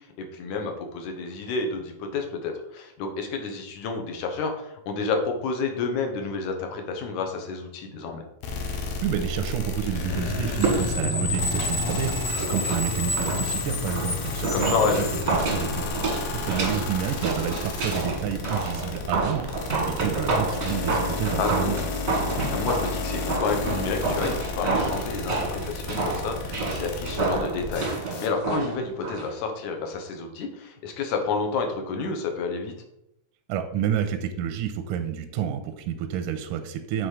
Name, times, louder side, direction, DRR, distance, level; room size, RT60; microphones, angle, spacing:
voice 1, 0.2-8.2 14.5-15.1 21.4-21.9 22.5-32.7, left 4 dB, 70° left, 4 dB, 2.3 m, -30 dB
Glitch collection, 8.4-28.3, left 3 dB, 90° left, 2.7 m, -33 dB
voice 2, 9.0-15.1 15.3-15.8 16.3-21.8 33.5-37.1, right 9 dB, 80° right, 7 dB, 2.0 m, -29 dB
Screech, 10.1-15.9, left 2 dB, 40° left, 1.7 m, -30 dB
sound 1, 10.5-29.3 29.6-29.7, right 3 dB, 45° right, 1.0 m, -30 dB
7.8 x 4.1 x 4.8 m, 0.80 s
omnidirectional pair, 3.8 m